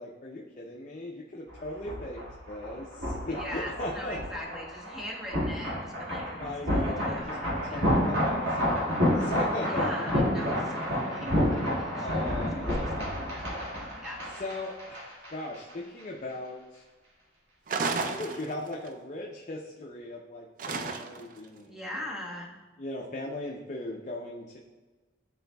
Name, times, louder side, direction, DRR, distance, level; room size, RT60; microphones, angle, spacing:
voice 1, 0.0-4.2 6.4-10.1 12.0-13.4 14.4-16.8 17.7-22.0 22.8-24.6, left 1 dB, 45° left, -2 dB, 0.6 m, -39 dB
sound 1, 1.5-15.3 15.5-15.7, equal, 85° right, 2.0 m, -29 dB
voice 2, 3.3-8.0 9.5-12.9 14.0-14.2 21.7-22.6, left 1 dB, 5° right, -2 dB, 1.0 m, -41 dB
sound 2, 17.7-18.9 20.6-21.4, right 4 dB, 50° right, 0.4 m, -32 dB
10.5 x 4.0 x 2.3 m, 1.2 s
head